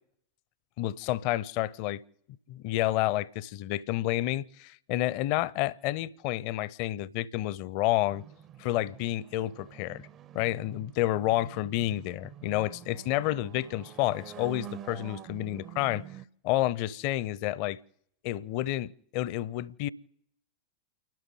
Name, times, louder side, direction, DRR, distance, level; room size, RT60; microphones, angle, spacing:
voice 1, 0.8-2.0 2.5-8.2 8.6-10.1 10.3-16.0 16.4-17.8 18.2-19.9, left 15 dB, 45° left, 0.5 m, -30 dB
sound 1, 8.1-16.3, right 10 dB, 30° right, 0.5 m, -47 dB
29.5 x 12.0 x 3.8 m
figure-of-eight pair, 90°, 0 cm